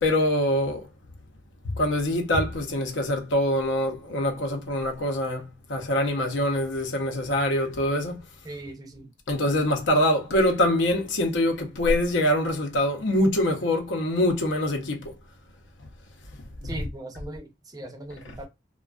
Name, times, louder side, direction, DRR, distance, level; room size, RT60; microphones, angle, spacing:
voice 1, 0.0-0.9 1.7-8.2 9.3-15.1 16.6-16.8, left 1 dB, 80° left, 0.7 m, -24 dB
voice 2, 8.4-9.1 16.6-18.5, right 1 dB, 20° right, 0.4 m, -39 dB
2.4 x 2.2 x 2.2 m
head